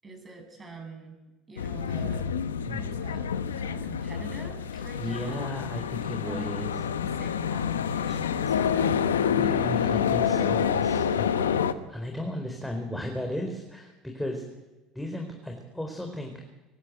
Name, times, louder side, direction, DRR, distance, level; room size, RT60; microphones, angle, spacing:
voice 1, 0.0-1.2 1.5-2.2 2.7-3.2 3.5-5.5 6.2-9.0, right 2 dB, 30° right, 5 dB, 7.7 m, -44 dB
sound 1, 1.6-11.7, left 7 dB, 90° left, 1.0 m, -27 dB
voice 2, 2.7-3.0 4.7-6.7 9.4-14.4 14.9-16.3, left 1 dB, 5° left, 3 dB, 4.3 m, -35 dB
24.5 x 13.0 x 9.4 m, 1.1 s
hypercardioid pair, 70°, 0 cm